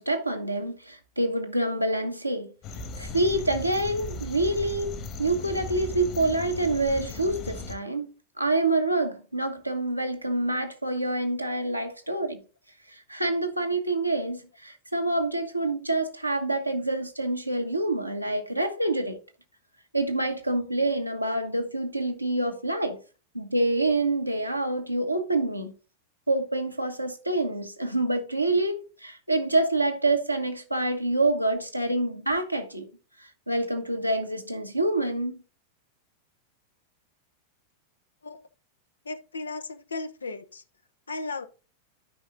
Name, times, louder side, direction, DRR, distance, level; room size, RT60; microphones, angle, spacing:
voice 1, 0.0-2.5 3.0-8.1 8.4-12.4 12.9-19.2 19.9-23.0 23.3-25.7 26.3-32.9 33.5-35.4, right 2 dB, 90° right, 1.3 m, -27 dB
sound 1, 2.6-7.8, left 3 dB, 35° left, 1.6 m, -37 dB
voice 2, 39.0-40.6 41.1-41.5, left 3 dB, 75° left, 0.8 m, -35 dB
12.5 x 5.3 x 2.6 m
figure-of-eight pair, 90°, 0 cm